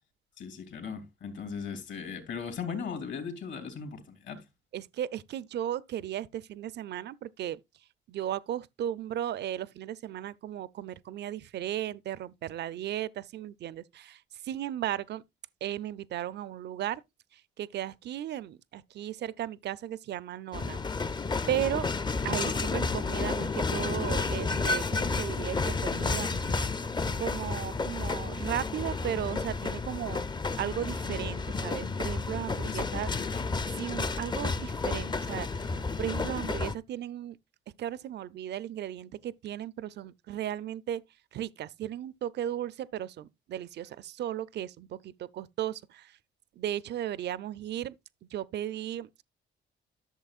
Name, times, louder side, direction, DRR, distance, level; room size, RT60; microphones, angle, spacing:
voice 1, 0.4-4.4 32.6-33.5, left 6 dB, 65° left, 2.7 m, -38 dB
voice 2, 4.7-7.6 8.1-15.2 15.6-17.0 17.3-21.1 21.5-21.9 22.2-26.5 27.2-30.2 30.6-33.1 33.7-37.4 37.8-41.0 41.3-46.2 46.6-48.0 48.3-49.2, right 11 dB, 60° right, 0.5 m, -36 dB
sound 1, 20.5-36.8, left 4 dB, 20° left, 0.5 m, -31 dB
12.0 x 6.6 x 2.4 m
cardioid pair, 90°, 20 cm